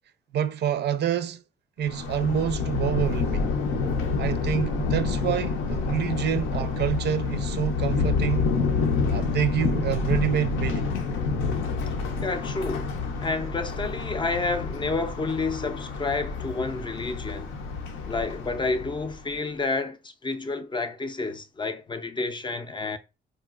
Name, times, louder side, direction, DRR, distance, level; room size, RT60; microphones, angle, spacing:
voice 1, 0.3-1.4 1.8-3.6 4.2-8.5 9.1-10.9, right 9 dB, 60° right, 0.4 m, -27 dB
Thunder, 1.8-19.2, left 4 dB, 85° left, 0.6 m, -28 dB
voice 2, 12.2-12.9 13.2-17.5 18.1-23.0, left 3 dB, 25° left, 0.4 m, -30 dB
3.8 x 2.2 x 2.3 m
cardioid pair, 90°, 20 cm